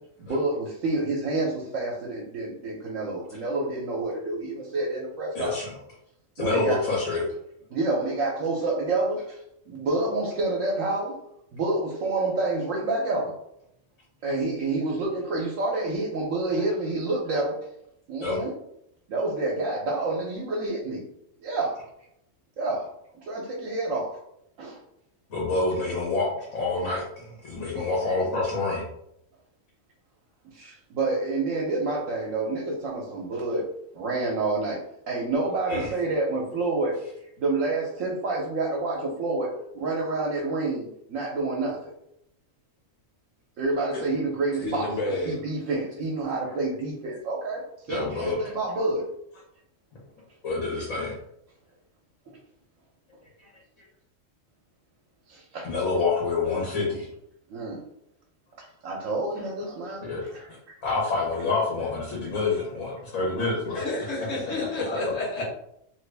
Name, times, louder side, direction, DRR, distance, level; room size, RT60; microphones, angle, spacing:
voice 1, 0.2-5.6 6.4-6.8 7.7-13.4 14.2-17.7 18.1-18.5 19.1-21.1 21.4-21.9 22.6-22.9 23.2-24.2 24.6-24.8 27.7-27.8 30.5-34.8 35.1-37.1 37.4-41.9 43.6-49.1 55.3-55.7 57.5-57.9 58.6-60.5, right 2 dB, 75° right, -3 dB, 1.0 m, -28 dB
voice 2, 5.3-5.7 6.3-7.3 18.2-18.4 25.3-28.8 35.7-35.9 47.9-48.6 50.4-51.1 53.4-53.5 55.6-57.1 60.0-63.8 64.4-65.0, left 3 dB, 85° left, -5 dB, 1.5 m, -28 dB
voice 3, 44.6-45.4 63.7-65.4, left 2 dB, 70° left, -3 dB, 1.5 m, -30 dB
3.1 x 2.5 x 3.3 m, 0.76 s
omnidirectional pair, 1.4 m